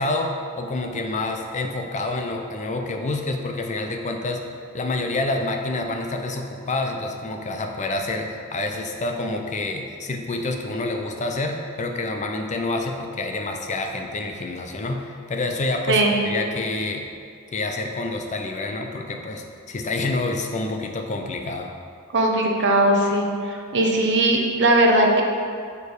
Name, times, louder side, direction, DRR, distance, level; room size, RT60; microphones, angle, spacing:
voice 1, 0.0-4.4 4.7-15.0 15.3-17.0 17.5-21.7, left 2 dB, 35° left, 3 dB, 0.5 m, -28 dB
voice 2, 15.9-16.2 22.1-25.2, right 1 dB, 55° right, 1 dB, 0.9 m, -19 dB
7.1 x 4.5 x 4.8 m, 2.3 s
head